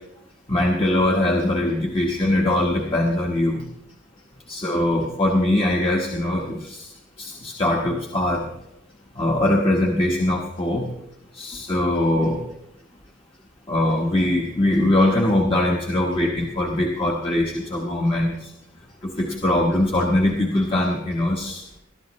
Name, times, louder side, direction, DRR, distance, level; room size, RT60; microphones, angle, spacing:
voice 1, 0.5-3.7 4.5-6.9 7.2-8.5 9.1-10.9 11.3-12.4 13.7-18.5 19.0-21.6, left 1 dB, 25° left, -2 dB, 1.3 m, -22 dB
20.5 x 12.5 x 3.2 m, 0.80 s
head